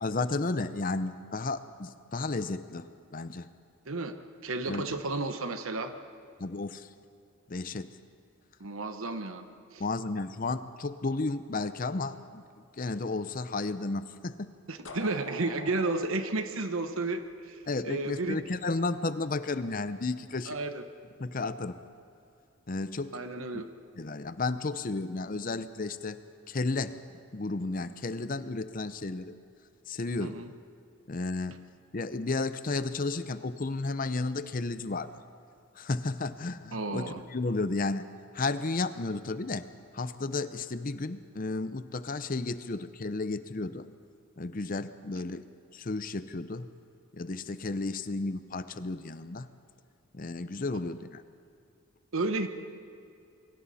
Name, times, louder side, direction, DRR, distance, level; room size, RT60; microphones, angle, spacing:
voice 1, 0.0-3.5 4.7-4.9 6.4-6.9 7.5-7.9 9.8-12.4 12.8-14.5 17.7-20.5 21.2-21.8 22.7-23.2 23.5-23.6 24.0-26.2 26.5-27.0 27.3-29.3 29.9-30.4 31.1-31.6 31.9-35.1 35.8-38.0 38.3-39.7 39.9-43.9 44.4-45.4 45.7-46.7 47.1-49.5 50.1-51.2, left 3 dB, 40° left, 12 dB, 0.7 m, -33 dB
voice 2, 4.4-5.9 8.6-9.5 9.7-9.8 14.7-18.4 20.5-20.9 23.1-23.7 30.2-30.5 36.7-37.2 52.1-52.5, right 2 dB, 70° right, 8 dB, 1.1 m, -32 dB
sound 1, 14.8-17.7, left 2 dB, 65° left, 1.8 m, -46 dB
28.5 x 23.0 x 4.2 m, 2.4 s
head